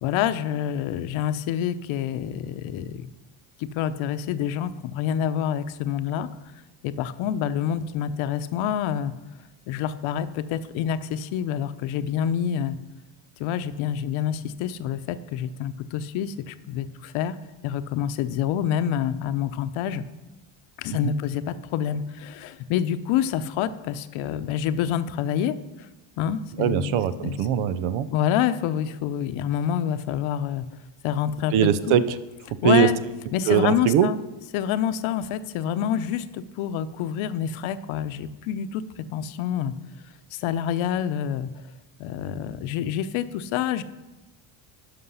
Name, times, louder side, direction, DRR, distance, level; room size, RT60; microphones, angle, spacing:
voice 1, 0.0-3.1 3.6-6.3 6.8-9.1 9.7-12.8 13.4-17.4 17.6-20.0 20.8-25.9 26.2-27.4 28.1-30.7 31.0-31.5 31.9-32.0 32.6-33.0 33.3-34.2 34.5-38.8 39.1-39.7 40.3-41.5 42.0-43.8, left 9 dB, 75° left, 12 dB, 0.8 m, -27 dB
voice 2, 26.6-28.1 31.5-32.2 32.6-32.9 33.5-34.1, right 9 dB, 85° right, 14 dB, 0.8 m, -21 dB
11.5 x 5.9 x 5.6 m, 1.1 s
cardioid pair, 120°, 48 cm